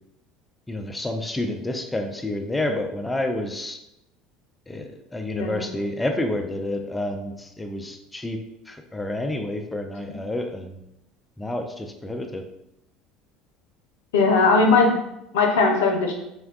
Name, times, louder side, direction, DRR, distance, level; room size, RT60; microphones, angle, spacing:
voice 1, 0.7-3.8 4.7-8.4 8.7-10.8 11.4-12.4, left 1 dB, 15° left, 4 dB, 0.4 m, -29 dB
voice 2, 14.1-14.9 15.3-16.1, left 4 dB, 75° left, 2 dB, 0.5 m, -18 dB
3.6 x 2.2 x 2.3 m, 0.86 s
hypercardioid pair, 70°, 0 cm